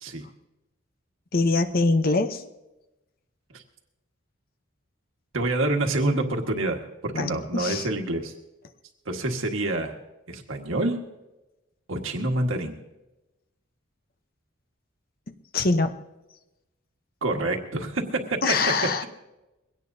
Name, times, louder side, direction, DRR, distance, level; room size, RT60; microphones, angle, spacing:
voice 1, 1.3-2.4 7.1-7.9 15.5-15.9 18.4-19.1, left 3 dB, 45° left, 9 dB, 0.8 m, -23 dB
voice 2, 5.3-8.3 9.1-9.9 10.3-11.0 11.9-12.8 17.2-18.4, right 2 dB, 80° right, 3 dB, 1.6 m, -27 dB
22.0 x 17.0 x 2.7 m, 0.99 s
head